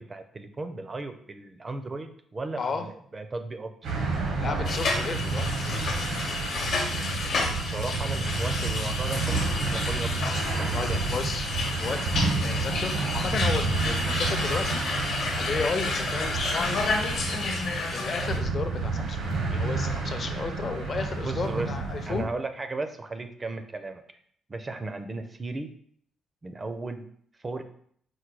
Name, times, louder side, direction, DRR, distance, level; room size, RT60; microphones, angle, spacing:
voice 1, 0.0-3.7 7.4-10.1 10.5-11.0 21.2-21.7 22.1-24.0 24.5-25.7 26.4-27.1 27.4-27.6, right 3 dB, 25° right, 8 dB, 0.4 m, -35 dB
voice 2, 2.6-2.9 4.4-5.9 10.7-11.5 11.8-14.8 15.4-17.6 17.9-19.2 19.5-22.3, left 4 dB, 40° left, 6 dB, 0.5 m, -33 dB
sound 1, 3.8-22.2, right 3 dB, 80° right, 0.8 m, -30 dB
sound 2, 4.6-18.4, left 3 dB, 60° left, 0.9 m, -31 dB
4.5 x 2.2 x 4.6 m, 0.62 s
cardioid pair, 135°, 0 cm